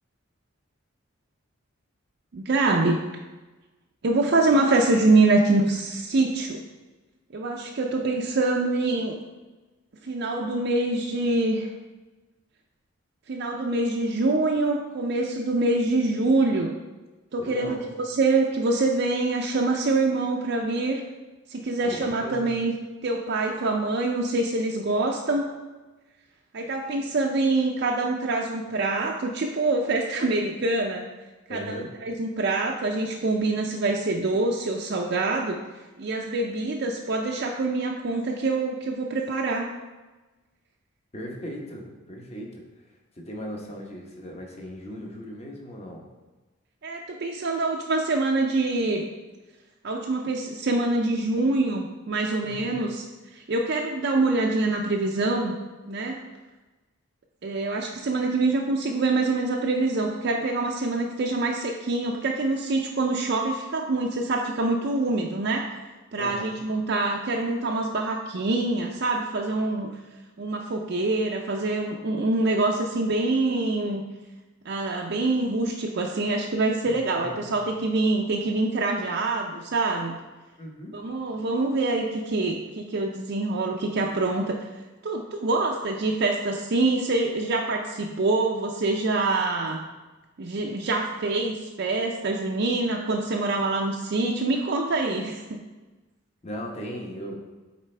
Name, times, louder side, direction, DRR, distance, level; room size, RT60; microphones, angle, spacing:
voice 1, 2.3-3.1 4.0-6.6 7.3-9.1 10.0-11.7 13.3-16.7 17.3-21.0 21.5-22.7 23.0-25.5 26.5-31.1 31.5-31.8 32.0-35.6 36.0-39.7 46.8-49.1 49.8-53.0 53.3-55.5 55.9-56.2 57.4-65.8 66.1-69.9 70.4-74.0 74.6-80.2 80.9-84.6 85.0-89.9 90.4-95.6, right 2 dB, 50° right, 0 dB, 0.5 m, -25 dB
voice 2, 17.4-17.8 21.8-22.5 31.5-31.9 41.1-42.6 43.2-46.1 52.4-52.8 66.2-66.5 76.8-77.5 80.6-81.0 96.4-97.4, equal, 30° left, 0 dB, 1.0 m, -38 dB
8.1 x 4.3 x 3.3 m, 1.2 s
head